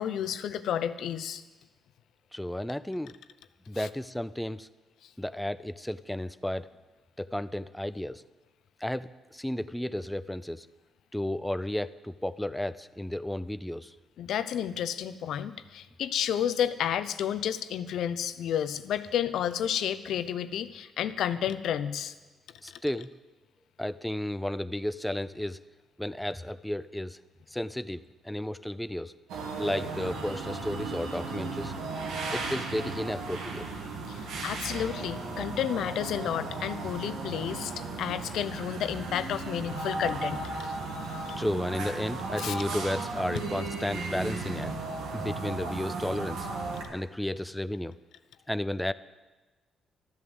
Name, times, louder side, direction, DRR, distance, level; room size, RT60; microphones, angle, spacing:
voice 1, 0.0-1.4 3.7-3.9 14.2-22.1 22.7-22.8 34.1-40.8 41.2-41.4 42.4-42.6 45.2-45.3, left 9 dB, 75° left, 13 dB, 0.7 m, -31 dB
voice 2, 2.3-3.1 3.7-4.7 5.2-6.7 7.2-8.2 8.8-10.7 11.1-13.9 22.6-23.1 23.8-25.6 26.0-27.2 27.5-29.1 29.6-31.7 32.3-33.6 41.4-44.7 45.1-46.5 46.9-47.9 48.5-48.9, left 1 dB, 5° left, 14 dB, 0.4 m, -33 dB
sound 1, 29.3-46.8, right 3 dB, 85° right, 2.4 m, -35 dB
12.5 x 11.0 x 7.9 m, 1.2 s
cardioid pair, 90°, 0 cm